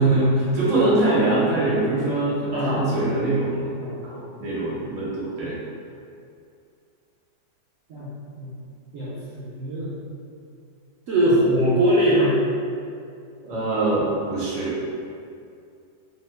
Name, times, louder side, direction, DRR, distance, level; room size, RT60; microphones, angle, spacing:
voice 1, 0.0-3.7 4.0-5.5 13.4-14.8, right 2 dB, 40° right, -8 dB, 0.6 m, -23 dB
voice 2, 8.9-9.9 11.1-12.4, equal, 70° right, -9 dB, 0.8 m, -21 dB
2.8 x 2.2 x 3.1 m, 2.4 s
omnidirectional pair, 1.7 m